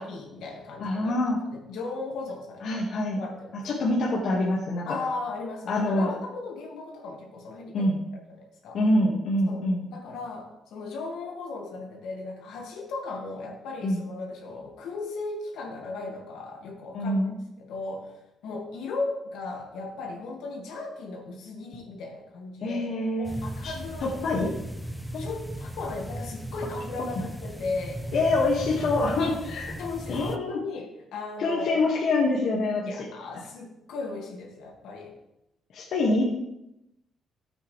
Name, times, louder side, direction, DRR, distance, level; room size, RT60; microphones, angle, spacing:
voice 1, 0.0-1.2 1.5-2.8 3.2-4.0 4.9-7.9 8.4-8.8 9.5-17.2 17.6-24.2 25.2-28.1 29.8-31.8 32.9-35.2, left 3 dB, 85° left, 0 dB, 2.3 m, -36 dB
voice 2, 0.8-1.4 2.6-3.2 3.6-5.0 5.7-6.1 7.7-8.0 8.7-9.9 13.8-14.0 16.9-17.3 22.6-23.4 23.6-23.7 24.0-24.5 25.1-25.2 27.2-27.3 28.1-29.8 30.1-30.6 31.4-33.1 35.7-36.2, left 2 dB, 70° left, -4 dB, 1.9 m, -25 dB
sound 1, 23.2-30.4, right 1 dB, ahead, 0.8 m, -37 dB
13.5 x 8.2 x 3.4 m, 0.88 s
cardioid pair, 90°, 0 cm